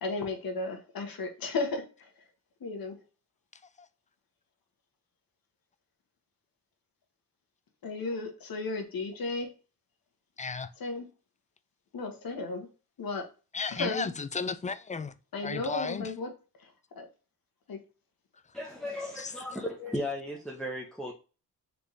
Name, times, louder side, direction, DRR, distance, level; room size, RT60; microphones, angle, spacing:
voice 1, 0.0-2.1 2.6-3.0 7.8-9.5 10.8-11.1 11.9-12.7 13.0-13.2 13.7-14.1 15.3-16.3 16.9-17.1 17.7-17.8, left 3 dB, 60° left, 1.4 m, -34 dB
voice 2, 10.4-10.7 13.5-15.1 15.4-16.1 19.2-19.3, left 4 dB, 20° left, 0.3 m, -34 dB
voice 3, 18.5-21.1, left 1 dB, ahead, 0.9 m, -36 dB
4.1 x 3.3 x 3.2 m
cardioid pair, 70°, 40 cm